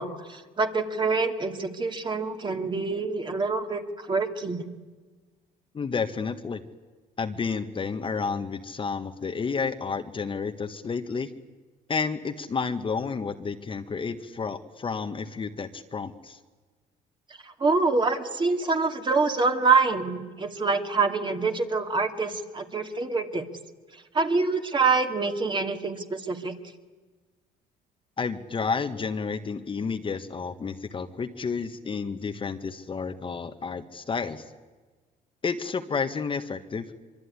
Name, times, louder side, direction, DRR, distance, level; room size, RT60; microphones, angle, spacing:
voice 1, 0.0-4.7 17.4-23.5 24.1-26.6, right 4 dB, 30° right, 5 dB, 2.5 m, -26 dB
voice 2, 5.7-6.6 7.2-11.3 11.9-16.4 28.2-34.4 35.4-36.9, left 5 dB, 30° left, 7 dB, 1.5 m, -31 dB
24.5 x 24.0 x 9.8 m, 1.3 s
cardioid pair, 110°, 17 cm